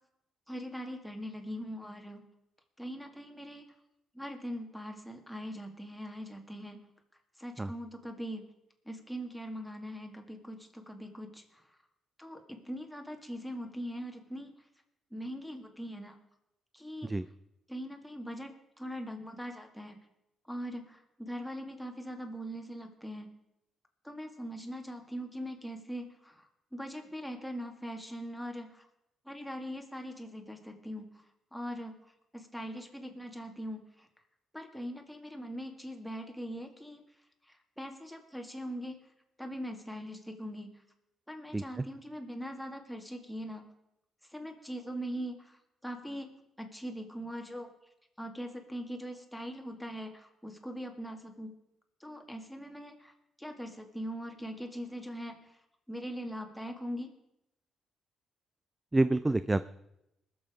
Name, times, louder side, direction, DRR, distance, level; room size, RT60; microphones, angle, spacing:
voice 1, 0.5-2.2 2.8-3.7 4.1-6.8 7.4-8.5 8.9-11.4 12.2-14.5 15.1-16.2 16.7-17.1 17.7-20.0 20.5-23.3 24.0-26.5 26.7-28.9 29.3-31.1 31.5-32.0 32.3-34.1 34.5-37.0 37.8-39.0 39.4-40.7 41.3-43.6 44.3-46.3 46.6-47.7 48.2-51.5 52.0-53.1 53.4-55.5 55.9-57.1, equal, ahead, 3 dB, 2.1 m, -41 dB
voice 2, 41.5-41.8 58.9-59.6, right 2 dB, 15° right, 14 dB, 0.4 m, -28 dB
20.5 x 7.1 x 5.0 m, 0.85 s
cardioid pair, 90°, 0 cm